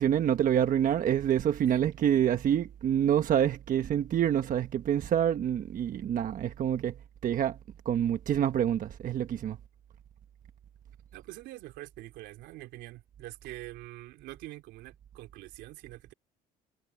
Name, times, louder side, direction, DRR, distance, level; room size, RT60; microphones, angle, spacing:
voice 1, 0.0-6.9 7.2-7.6 7.8-9.6, right 10 dB, 50° right, 1.2 m, -27 dB
voice 2, 11.1-16.1, right 17 dB, 85° right, 3.3 m, -45 dB
cardioid pair, 105°, 17 cm